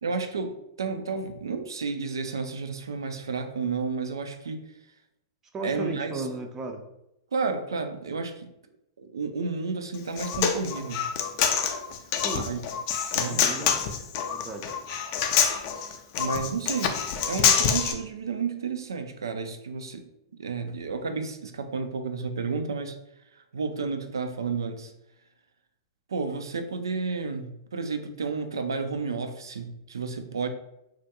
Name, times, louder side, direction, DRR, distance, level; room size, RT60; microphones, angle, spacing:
voice 1, 0.0-4.6 5.6-6.3 7.3-8.5 9.0-11.1 12.3-12.6 13.1-13.4 16.2-23.0 23.3-24.9 26.1-30.5, right 4 dB, 85° right, 7 dB, 0.3 m, -31 dB
voice 2, 5.5-6.8 12.1-12.5 13.1-13.8 14.3-14.7, right 3 dB, 20° right, 4 dB, 0.4 m, -35 dB
Human voice, 9.9-17.9, left 7 dB, 50° left, 0.3 m, -26 dB
2.3 x 2.1 x 2.8 m, 0.85 s
hypercardioid pair, 115°, 2 cm